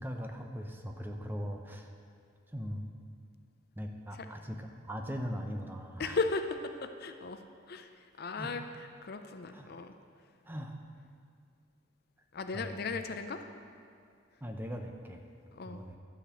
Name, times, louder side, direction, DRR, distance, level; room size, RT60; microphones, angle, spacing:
voice 1, 0.0-1.9 2.5-2.9 3.7-6.2 8.4-8.5 9.5-9.7 10.5-10.8 12.5-12.9 14.4-15.2 15.7-16.0, equal, 10° right, 3 dB, 0.6 m, -40 dB
voice 2, 6.0-7.9 8.2-9.9 12.3-13.4 15.5-15.8, left 4 dB, 50° left, 7 dB, 0.5 m, -36 dB
11.5 x 5.0 x 7.2 m, 2.4 s
head